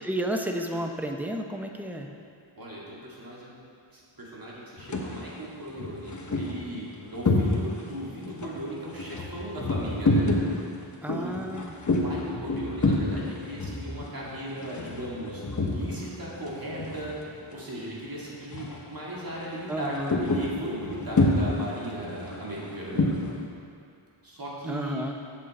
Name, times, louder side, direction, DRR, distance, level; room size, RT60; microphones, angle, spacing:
voice 1, 0.0-2.1 11.0-11.7 19.7-20.2 24.7-25.1, right 1 dB, 5° right, 3 dB, 0.6 m, -32 dB
voice 2, 2.6-3.5 3.9-10.3 11.1-11.3 11.9-15.4 15.7-23.1 24.2-25.0, right 1 dB, 45° right, -5 dB, 2.1 m, -37 dB
sound 1, 4.8-5.2 5.7-7.9 8.2-16.2 16.4-17.5 17.8-18.1 18.4-18.9 19.2-23.4, left 2 dB, 35° left, 1.0 m, -28 dB
7.8 x 7.2 x 4.2 m, 2.4 s
wide cardioid pair, 70°, 49 cm